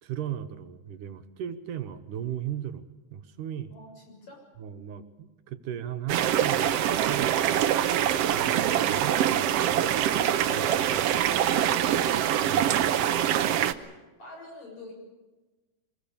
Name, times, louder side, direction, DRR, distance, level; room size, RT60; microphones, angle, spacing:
voice 1, 0.0-2.8 3.1-3.7 4.6-7.4 8.3-10.0 10.5-10.6 12.4-12.8, right 10 dB, 85° right, 8 dB, 2.7 m, -36 dB
voice 2, 3.7-4.4 10.2-13.2 14.2-14.9, left 1 dB, 60° left, 1 dB, 8.2 m, -45 dB
sound 1, 6.1-13.7, right 10 dB, 70° right, 1.6 m, -24 dB
24.5 x 21.5 x 7.0 m, 1.2 s
omnidirectional pair, 3.6 m